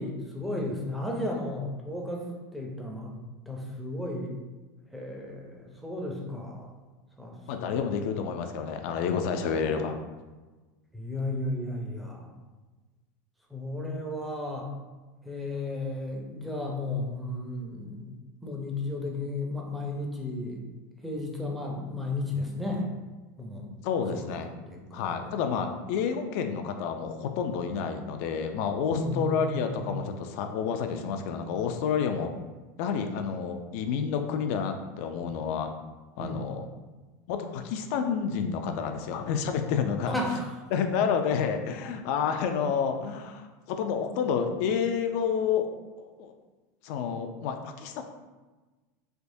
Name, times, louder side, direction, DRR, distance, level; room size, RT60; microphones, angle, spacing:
voice 1, 0.0-3.1 3.5-4.3 4.9-6.7 7.2-7.9 10.9-12.3 13.5-14.7 15.2-20.6 21.0-22.8 23.4-23.7 24.1-24.3 24.7-25.3 28.9-29.9 36.2-36.5 40.1-40.5, left 2 dB, ahead, -1 dB, 0.5 m, -34 dB
voice 2, 7.5-10.0 23.8-24.5 24.9-32.3 32.8-35.7 36.2-36.6 37.3-40.2 40.7-45.7 46.0-46.3 46.8-48.0, left 6 dB, 60° left, 6 dB, 0.4 m, -29 dB
3.4 x 2.9 x 2.6 m, 1.2 s
supercardioid pair, 140°, 10 cm